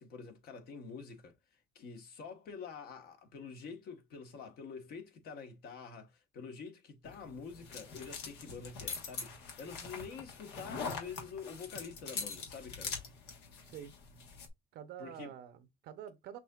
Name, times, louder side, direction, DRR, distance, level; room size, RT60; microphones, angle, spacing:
voice 1, 0.0-1.3 1.7-13.0 15.0-15.3, left 5 dB, 65° left, 1.2 m, -47 dB
sound 1, 7.0-14.5, left 5 dB, 90° left, 1.3 m, -43 dB
voice 2, 13.6-13.9 14.7-16.4, right 9 dB, 75° right, 0.8 m, -47 dB
6.1 x 2.8 x 2.3 m
cardioid pair, 110°, 17 cm